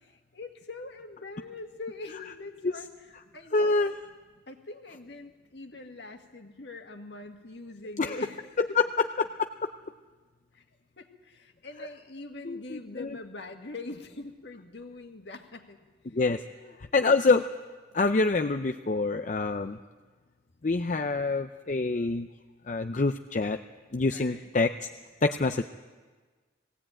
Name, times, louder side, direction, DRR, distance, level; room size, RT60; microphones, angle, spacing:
voice 1, 0.0-3.9 4.5-8.8 10.5-10.6 11.0-15.8 16.5-16.8 24.1-24.5, left 2 dB, 60° left, 5 dB, 1.9 m, -43 dB
voice 2, 3.5-3.9 8.0-8.2 8.8-8.9 9.4-9.5 12.5-13.1 16.1-16.4 16.9-17.4 17.9-19.8 20.6-22.3 22.7-23.6 23.9-24.7 25.2-25.6, left 3 dB, 40° left, 8 dB, 0.5 m, -26 dB
20.0 x 16.0 x 8.9 m, 1.4 s
head